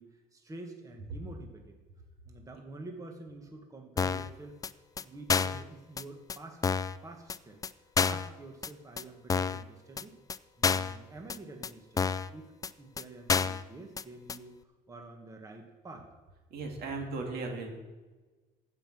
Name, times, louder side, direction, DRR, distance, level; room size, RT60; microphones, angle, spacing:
voice 1, 0.0-1.8 2.2-4.6 5.0-6.6 7.0-10.2 10.6-16.1, right 2 dB, 20° right, 3 dB, 1.4 m, -48 dB
sound 1, 4.0-4.3 4.6-4.7 5.0-5.1 5.3-5.6 6.0-6.1 6.3-6.4 6.6-7.0 7.3-7.4 7.6-7.7 8.0-8.3 8.6-8.7 9.0-9.1 9.3-9.6 10.0-10.1 10.3-10.4 10.6-11.0 11.3-11.4 11.6-11.7 12.0-12.3 12.6-12.7 13.0-13.1 13.3-13.6 14.0-14.1 14.3-14.4, left 6 dB, 20° left, 0.3 m, -29 dB
voice 2, 16.5-17.7, right 3 dB, 65° right, 2 dB, 2.3 m, -36 dB
15.0 x 5.6 x 6.1 m, 1.3 s
cardioid pair, 110°, 17 cm